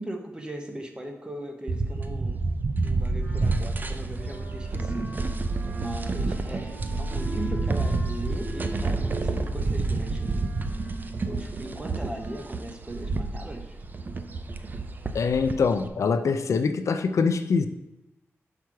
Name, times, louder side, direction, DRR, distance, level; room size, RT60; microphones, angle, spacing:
voice 1, 0.0-2.5 2.8-5.4 5.7-10.5 11.2-13.8, right 1 dB, 20° right, 3 dB, 1.0 m, -38 dB
sound 1, 1.7-15.9, right 3 dB, 40° right, 0.5 m, -29 dB
Wind instrument woodwind instrument, 3.2-12.6, equal, 60° right, 2.1 m, -44 dB
voice 2, 15.1-17.7, left 5 dB, 85° left, 8 dB, 0.5 m, -24 dB
6.2 x 5.7 x 4.7 m, 0.93 s
wide cardioid pair, 150°, 5 cm